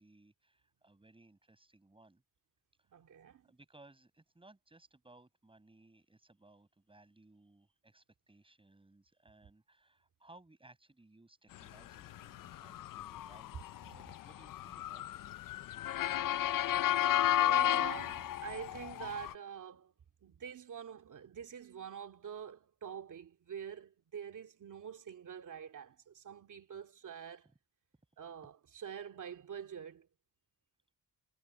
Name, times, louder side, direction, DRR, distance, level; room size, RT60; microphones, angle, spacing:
voice 1, 0.0-2.2 3.4-15.5, right 2 dB, 15° right, 7.8 m, -62 dB
voice 2, 2.9-3.5 17.4-19.9 20.2-27.5 28.2-30.1, right 8 dB, 70° right, 2.6 m, -46 dB
Motor vehicle (road) / Siren, 12.1-19.3, left 12 dB, 80° left, 0.6 m, -33 dB
wide cardioid pair, 125°, 32 cm